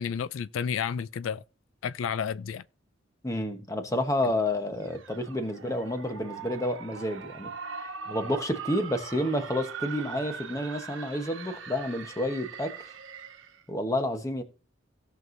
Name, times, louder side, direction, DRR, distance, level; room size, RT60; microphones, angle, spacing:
voice 1, 0.0-1.4 1.8-2.6, left 7 dB, 90° left, 0.4 m, -31 dB
voice 2, 3.2-7.5 8.1-12.7 13.7-14.4, left 1 dB, 15° left, 1.1 m, -30 dB
sound 1, 4.8-13.6, right 6 dB, 75° right, 1.1 m, -41 dB
17.0 x 6.1 x 2.6 m
head